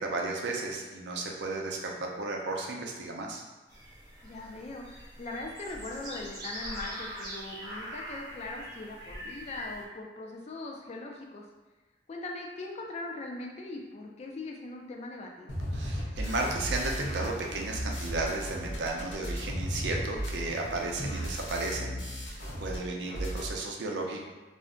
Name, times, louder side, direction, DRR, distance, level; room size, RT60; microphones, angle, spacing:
voice 1, 0.0-3.4 15.7-22.0 22.3-24.2, right 2 dB, 75° right, 0 dB, 0.5 m, -34 dB
sound 1, 3.7-9.8, equal, 25° right, 0.6 m, -43 dB
voice 2, 4.2-11.4 12.1-15.5, left 2 dB, 35° left, 1 dB, 0.3 m, -40 dB
sound 2, 15.5-22.8 23.0-23.5, equal, 90° left, 0.7 m, -35 dB
2.4 x 2.1 x 3.6 m, 1.2 s
head